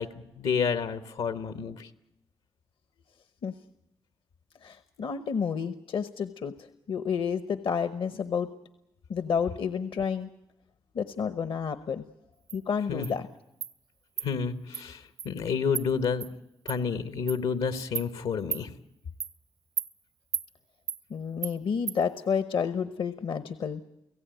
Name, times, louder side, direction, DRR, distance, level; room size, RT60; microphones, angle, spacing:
voice 1, 0.0-1.9 12.9-13.1 14.2-16.3 16.6-18.7, left 6 dB, 90° left, 10 dB, 1.4 m, -30 dB
voice 2, 4.6-6.5 6.9-8.5 9.1-10.3 10.9-12.0 12.5-13.3 21.1-23.8, left 6 dB, 70° left, 12 dB, 1.0 m, -30 dB
Insect, 12.5-12.6 13.0-13.1 13.6-13.7 14.2-14.3 14.7-14.8 15.2-15.3 15.7-15.9 16.2-16.3 16.7-16.8 17.3-17.4 18.0-18.1 18.5-18.6 19.2-19.3 19.8-19.9 20.3-20.5 20.9-21.0 21.4-21.5 21.9-22.0, right 7 dB, 80° right, 1.1 m, -33 dB
30.0 x 16.5 x 9.3 m, 0.88 s
cardioid pair, 60°, 9 cm